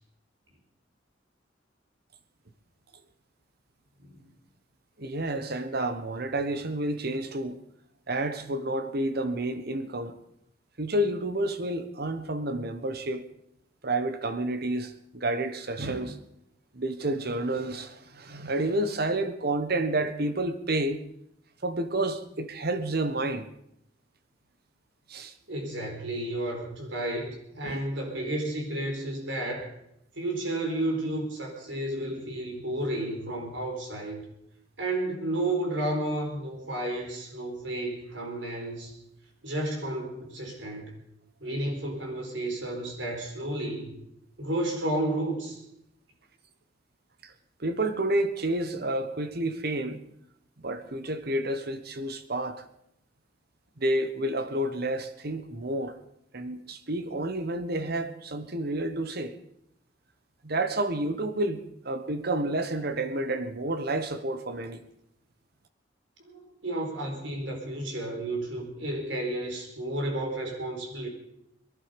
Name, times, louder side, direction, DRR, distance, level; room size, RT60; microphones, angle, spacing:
voice 1, 4.0-4.3 25.5-29.7 30.1-34.2 34.8-38.9 39.4-40.9 41.4-44.0 44.4-45.6 66.2-71.1, right 1 dB, 80° right, 4.6 m, -32 dB
voice 2, 5.0-7.6 8.1-10.1 10.8-13.2 13.8-16.2 16.7-21.0 21.6-23.5 25.1-25.3 27.6-27.8 47.2-47.3 47.6-50.0 50.6-52.6 53.8-56.0 56.3-59.3 60.4-64.8, right 1 dB, 55° right, 1.3 m, -30 dB
22.5 x 11.5 x 5.3 m
head